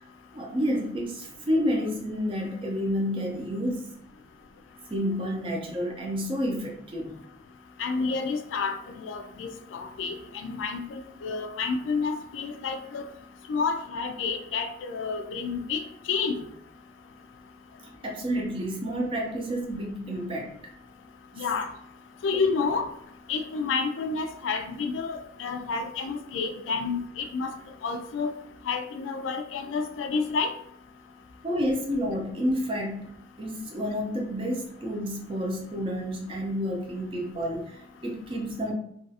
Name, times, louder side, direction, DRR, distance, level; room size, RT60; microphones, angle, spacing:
voice 1, 0.3-3.9 4.9-7.1 18.0-20.5 21.3-21.5 31.4-33.1 33.4-38.7, equal, 30° right, 0 dB, 0.5 m, -30 dB
voice 2, 7.8-13.1 13.5-15.8 16.1-16.4 21.4-21.7 22.2-22.9 23.3-27.5 27.8-28.3 28.6-30.5, left 4 dB, 90° left, 6 dB, 0.3 m, -29 dB
2.3 x 2.3 x 2.7 m, 0.69 s
head